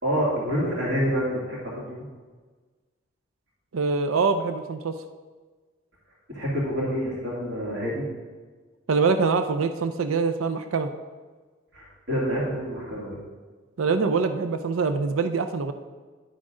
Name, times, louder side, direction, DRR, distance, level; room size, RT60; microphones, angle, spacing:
voice 1, 0.0-1.8 6.3-8.0 11.7-13.2, equal, 55° right, -5 dB, 2.2 m, -27 dB
voice 2, 3.7-4.9 8.9-10.9 13.8-15.7, right 4 dB, 85° right, 8 dB, 0.5 m, -24 dB
10.5 x 6.2 x 3.7 m, 1.4 s
head